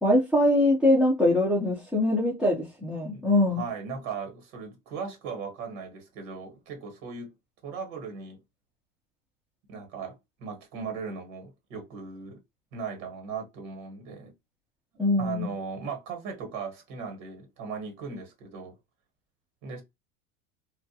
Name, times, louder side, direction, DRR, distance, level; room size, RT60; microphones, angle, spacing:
voice 1, 0.0-3.6 15.0-15.5, left 1 dB, ahead, 0.4 m, -23 dB
voice 2, 3.5-7.3 7.6-8.4 9.7-12.4 12.7-14.3 15.2-18.7 19.6-19.8, right 5 dB, 65° right, 1.3 m, -38 dB
2.4 x 2.1 x 2.6 m
supercardioid pair, 125°, 42 cm